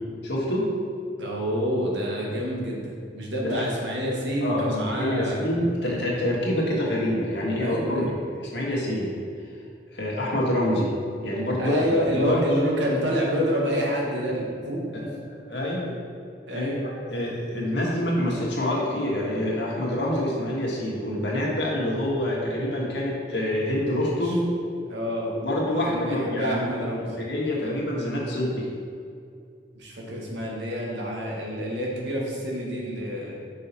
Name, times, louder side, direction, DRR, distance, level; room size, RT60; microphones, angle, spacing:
voice 1, 0.2-0.7 3.4-3.6 4.4-8.0 8.5-9.1 9.9-10.9 11.2-12.4 14.9-15.0 15.3-16.0 16.5-16.8 17.1-24.4 25.3-28.7, left 1 dB, 75° left, -4 dB, 1.6 m, -26 dB
voice 2, 1.2-5.4 7.6-8.1 11.6-14.9 16.5-16.8 24.2-24.3 24.9-25.3 25.7-27.1 29.7-33.4, equal, 90° right, -2 dB, 1.4 m, -28 dB
5.6 x 5.6 x 4.2 m, 2.4 s
head